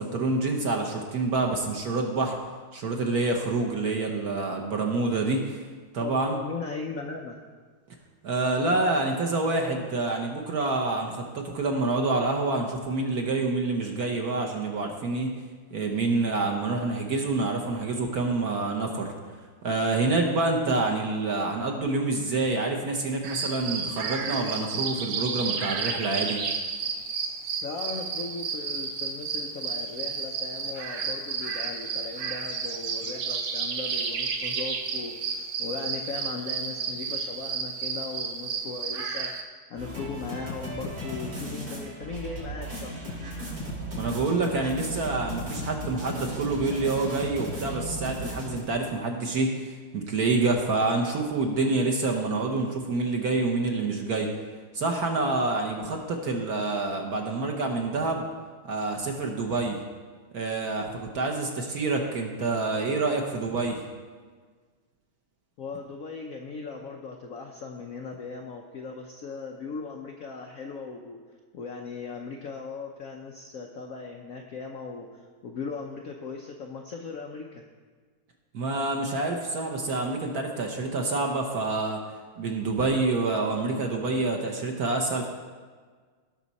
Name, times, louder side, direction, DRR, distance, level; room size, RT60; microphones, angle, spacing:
voice 1, 0.0-2.4 2.7-5.6 5.9-6.4 8.2-15.3 15.7-19.1 19.6-26.4 44.0-54.3 54.7-58.2 58.6-59.8 60.3-63.8 78.5-82.0 82.4-85.3, right 3 dB, 55° right, 2 dB, 1.2 m, -27 dB
voice 2, 6.0-7.4 27.6-43.0 65.6-71.2 71.5-77.6, left 4 dB, 90° left, 2 dB, 0.7 m, -38 dB
sound 1, 23.2-39.4, right 5 dB, 85° right, 1.9 m, -32 dB
sound 2, 39.7-48.6, equal, 70° right, 4.2 m, -36 dB
17.0 x 6.0 x 4.1 m, 1.5 s
omnidirectional pair, 2.4 m